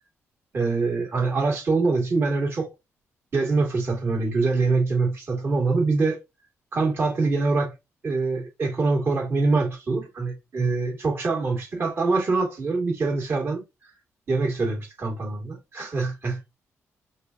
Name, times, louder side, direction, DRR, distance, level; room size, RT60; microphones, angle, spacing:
voice 1, 0.5-2.7 3.3-6.2 6.7-7.7 8.0-13.6 14.3-16.4, right 3 dB, 45° right, 2.0 m, -24 dB
4.7 x 2.5 x 2.6 m
cardioid pair, 95°, 6 cm